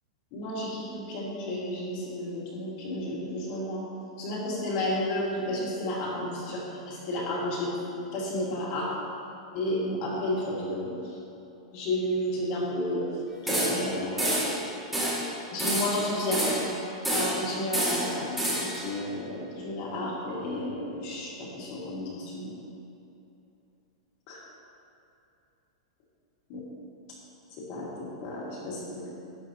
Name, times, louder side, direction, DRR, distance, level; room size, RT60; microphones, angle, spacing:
voice 1, 0.3-3.8 4.2-7.7 8.1-8.9 9.5-11.0 11.7-13.0 13.4-14.4 15.5-16.6 17.1-22.5 24.3-24.4 26.5-26.6 27.7-29.1, left 1 dB, 35° left, -5 dB, 2.4 m, -32 dB
sound 1, 13.5-13.9 14.2-14.6 14.9-15.2 15.6-16.7 17.0-17.4 17.7-18.8, right 1 dB, 5° right, 1.9 m, -28 dB
12.0 x 8.4 x 3.1 m, 2.8 s
supercardioid pair, 170°, 3 cm